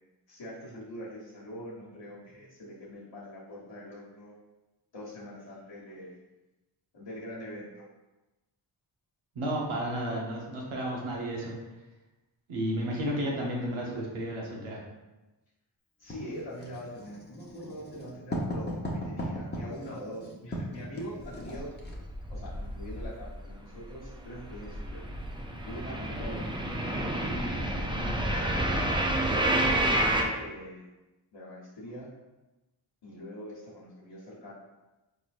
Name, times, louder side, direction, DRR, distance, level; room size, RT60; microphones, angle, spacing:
voice 1, 0.3-4.3 4.9-6.2 6.9-7.9 16.0-21.7 22.3-25.1 25.6-28.4 29.2-30.9 31.3-32.1 33.0-34.5, equal, 65° left, -8 dB, 1.2 m, -43 dB
voice 2, 9.3-11.6 12.5-14.8, right 1 dB, 85° right, -2 dB, 1.1 m, -32 dB
Writing, 16.1-22.0, equal, 20° left, 0.9 m, -37 dB
sound 1, 21.2-23.5 23.8-30.2, right 1 dB, 10° right, 0.5 m, -29 dB
4.2 x 3.1 x 2.5 m, 1.1 s
cardioid pair, 45°, 48 cm